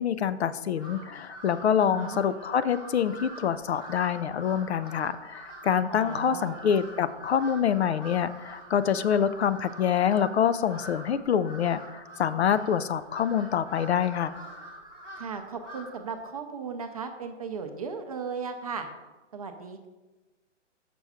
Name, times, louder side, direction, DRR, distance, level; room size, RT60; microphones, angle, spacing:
voice 1, 0.0-14.4, left 8 dB, 60° left, 14 dB, 0.5 m, -26 dB
Crow, 0.7-16.1, right 1 dB, 10° left, 0.8 m, -45 dB
voice 2, 1.8-2.2 5.9-6.6 15.2-18.9 19.3-19.9, right 5 dB, 30° right, 6 dB, 0.5 m, -36 dB
6.0 x 4.7 x 5.5 m, 1.2 s
hypercardioid pair, 155°, 36 cm